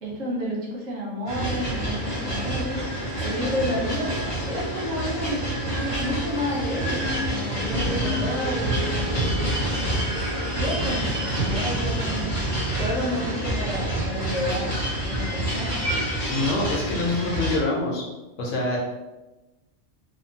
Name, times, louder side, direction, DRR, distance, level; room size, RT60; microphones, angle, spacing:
voice 1, 0.0-2.8 3.2-4.1 4.5-9.3 9.6-12.3 12.7-15.8, equal, 80° right, -4 dB, 1.2 m, -31 dB
sound 1, 1.3-17.6, right 1 dB, 40° left, 0.9 m, -27 dB
voice 2, 16.3-18.0 18.4-18.8, left 2 dB, 75° left, -2 dB, 1.0 m, -25 dB
2.8 x 2.2 x 2.7 m, 1.1 s
omnidirectional pair, 1.3 m